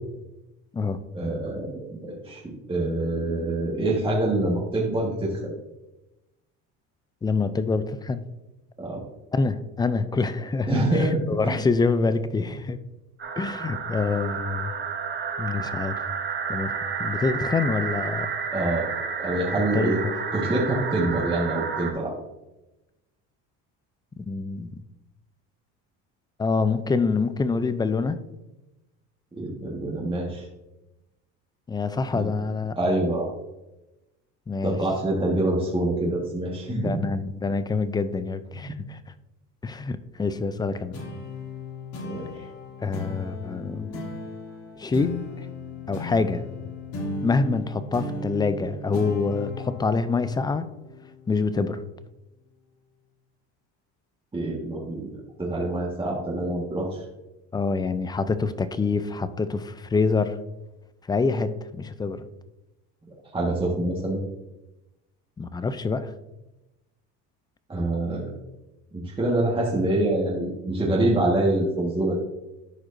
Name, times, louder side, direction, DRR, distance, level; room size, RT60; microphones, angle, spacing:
voice 1, 1.1-5.5 8.8-9.0 10.7-11.6 18.5-18.9 19.2-20.0 20.3-22.1 29.3-30.5 32.1-32.3 32.8-33.3 34.6-37.0 38.5-38.7 42.0-42.3 54.3-55.1 55.4-57.0 63.3-64.2 67.7-68.3 68.9-72.1, right 2 dB, 15° right, 1.4 m, -26 dB
voice 2, 7.2-8.3 9.3-12.8 13.4-14.7 15.4-16.0 16.5-16.7 17.0-18.3 19.7-20.0 24.2-24.8 26.4-28.2 31.7-32.8 34.5-34.8 36.7-39.0 39.6-40.9 42.8-44.0 44.8-45.5 45.9-46.4 47.2-50.7 51.3-51.8 57.5-60.4 61.1-62.3 65.4-66.1, left 4 dB, 10° left, 0.3 m, -26 dB
sound 1, 13.2-21.9, right 6 dB, 30° right, 1.1 m, -31 dB
sound 2, 40.9-51.8, left 2 dB, 65° left, 2.7 m, -36 dB
12.5 x 4.9 x 2.6 m
cardioid pair, 110°, 36 cm